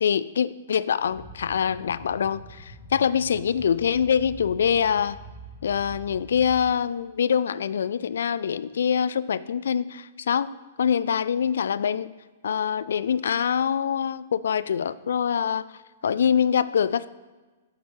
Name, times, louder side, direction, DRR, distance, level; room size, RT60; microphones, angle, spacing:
voice 1, 0.0-5.2 5.6-10.5 10.8-12.1 12.4-15.7 16.0-17.1, left 7 dB, 65° left, 17 dB, 0.3 m, -24 dB
sound 1, 1.0-6.6, right 2 dB, 45° left, 1.7 m, -44 dB
9.5 x 7.9 x 3.1 m, 1.3 s
figure-of-eight pair, 110°, 0 cm